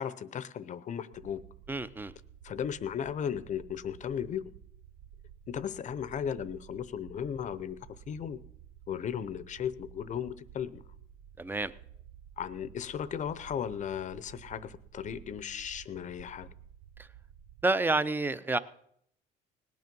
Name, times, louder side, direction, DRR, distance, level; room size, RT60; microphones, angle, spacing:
voice 1, 0.0-1.4 2.4-4.4 5.5-7.8 8.1-8.4 8.9-10.8 12.4-16.5, left 8 dB, 45° left, 16 dB, 0.7 m, -36 dB
sound 1, 1.1-17.6, right 9 dB, 85° right, 0.8 m, -53 dB
voice 2, 1.7-2.1 11.4-11.7 17.0-17.1 17.6-18.6, right 3 dB, 10° right, 14 dB, 0.6 m, -29 dB
18.5 x 9.4 x 5.3 m, 0.69 s
cardioid pair, 110°, 17 cm